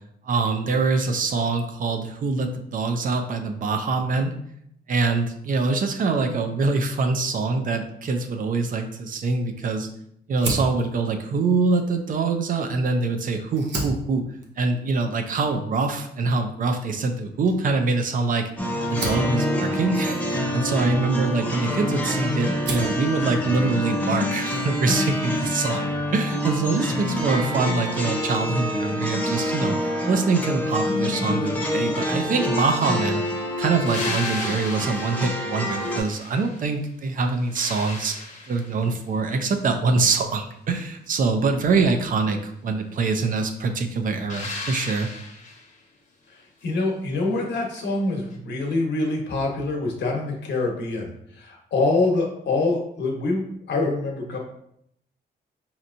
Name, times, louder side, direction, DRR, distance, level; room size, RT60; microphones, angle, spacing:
voice 1, 0.2-4.3 4.9-9.9 10.3-14.2 14.6-25.8 26.1-33.2 33.6-38.1 38.5-45.1, right 3 dB, 50° right, 5 dB, 0.5 m, -24 dB
Fire, 10.3-13.0 13.4-22.1 22.4-23.0, right 2 dB, 85° right, 0.8 m, -35 dB
sound 1, 18.6-36.0, left 1 dB, 10° left, 0.6 m, -26 dB
sound 2, 33.9-36.8 37.2-38.9 44.3-45.7 48.3-48.4, left 3 dB, 45° left, 0.8 m, -36 dB
voice 2, 46.6-54.4, left 3 dB, 75° left, 0 dB, 1.0 m, -25 dB
5.3 x 2.9 x 2.6 m, 0.73 s
wide cardioid pair, 160°, 18 cm